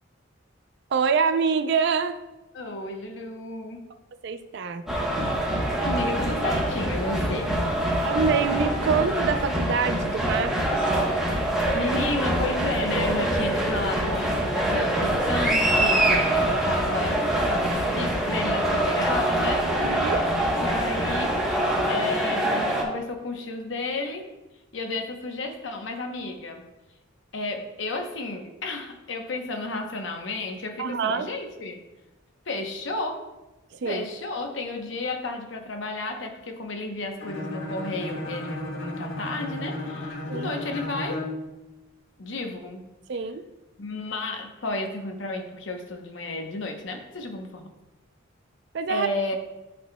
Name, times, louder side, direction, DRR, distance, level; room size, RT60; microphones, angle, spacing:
voice 1, 0.9-2.2 4.2-4.8 8.0-10.9 19.8-20.3 30.8-31.3 33.8-34.0 40.3-40.5 43.1-43.4 48.7-49.1, right 5 dB, 55° right, 9 dB, 0.4 m, -26 dB
voice 2, 2.5-3.9 5.8-7.6 11.3-11.4 11.7-16.4 16.6-17.2 17.5-19.7 20.5-21.5 21.9-24.3 24.7-26.6 27.3-31.8 32.5-33.2 33.8-41.3 42.2-42.8 43.8-47.7 48.9-49.4, left 2 dB, 65° left, 4 dB, 0.8 m, -32 dB
sound 1, 4.9-22.8, right 1 dB, 5° right, 1.0 m, -24 dB
Bowed string instrument, 37.2-41.4, left 1 dB, 90° left, 1.8 m, -34 dB
10.5 x 4.2 x 2.2 m, 1.0 s
head